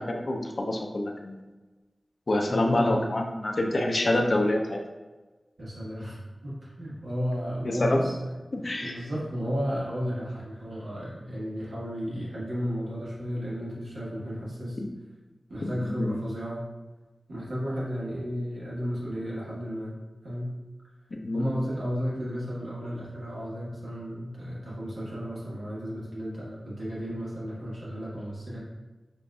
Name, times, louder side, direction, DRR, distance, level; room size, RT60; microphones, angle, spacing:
voice 1, 0.0-1.4 2.3-4.8 7.6-8.0 8.5-9.0 14.8-14.9 15.6-16.1 21.2-21.4, left 1 dB, 60° left, 2 dB, 0.6 m, -27 dB
voice 2, 2.5-3.0 5.6-8.3 8.8-14.8 15.5-16.6 17.3-20.0 20.2-20.5 21.3-28.6, equal, 85° right, -7 dB, 1.2 m, -33 dB
6.7 x 2.5 x 2.3 m, 1.2 s
wide cardioid pair, 65°, 0 cm